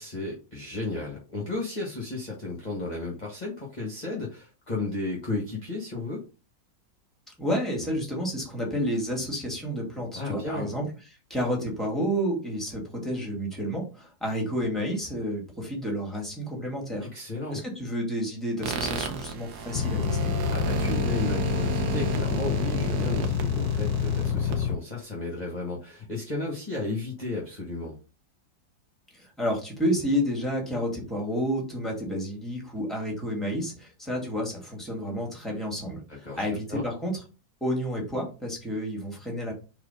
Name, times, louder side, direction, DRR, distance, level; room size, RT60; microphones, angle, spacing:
voice 1, 0.0-6.2 10.1-10.7 17.0-17.6 20.5-28.0 36.2-36.8, left 2 dB, 25° left, -2 dB, 1.5 m, -33 dB
voice 2, 7.4-10.9 11.3-17.1 17.5-20.3 29.1-37.2 37.6-39.5, equal, ahead, -1 dB, 2.2 m, -30 dB
sound 1, 18.6-24.6, right 7 dB, 70° right, 1.3 m, -33 dB
sound 2, 19.7-24.7, left 7 dB, 80° left, 1.3 m, -27 dB
4.7 x 3.9 x 5.1 m, 0.32 s
omnidirectional pair, 1.9 m